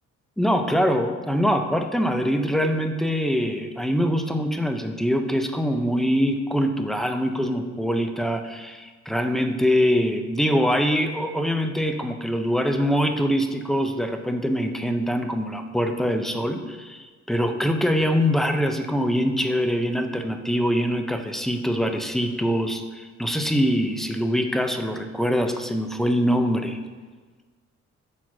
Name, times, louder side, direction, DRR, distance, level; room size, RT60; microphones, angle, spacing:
voice 1, 0.4-26.8, equal, ahead, 6 dB, 0.6 m, -24 dB
6.2 x 4.5 x 5.9 m, 1.4 s
cardioid pair, 90°, 30 cm